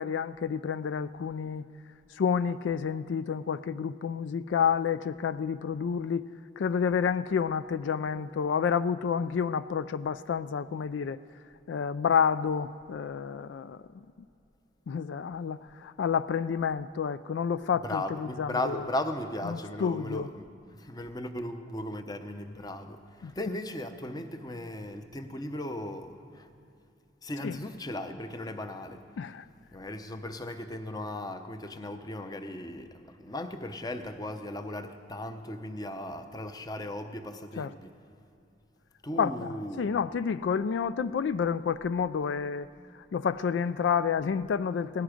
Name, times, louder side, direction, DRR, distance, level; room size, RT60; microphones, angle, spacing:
voice 1, 0.0-1.6 2.1-6.2 6.6-11.2 11.7-14.1 14.9-18.8 19.5-20.3 23.2-23.3 27.4-27.6 29.2-29.5 37.6-37.7 39.2-42.7 42.9-45.0, left 6 dB, 75° left, 15 dB, 0.3 m, -29 dB
voice 2, 17.8-20.5 20.7-26.5 27.2-29.0 29.7-37.9 39.0-39.9, left 1 dB, 20° left, 8 dB, 0.7 m, -37 dB
18.0 x 15.5 x 5.1 m, 2.6 s
head